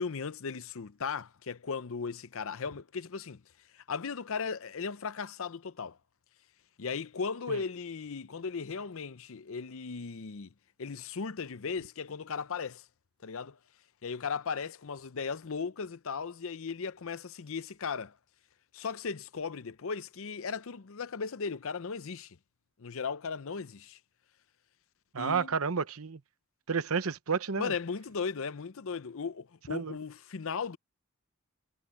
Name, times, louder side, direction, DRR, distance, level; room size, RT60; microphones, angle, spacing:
voice 1, 0.0-3.4 3.7-6.0 6.8-10.5 10.8-12.8 13.2-13.6 14.0-18.1 18.7-22.4 22.8-24.0 25.2-25.5 27.6-30.8, left 5 dB, 65° left, 0.6 m, -37 dB
voice 2, 25.1-26.2 26.7-27.7 29.7-30.0, right 5 dB, 70° right, 0.9 m, -31 dB
head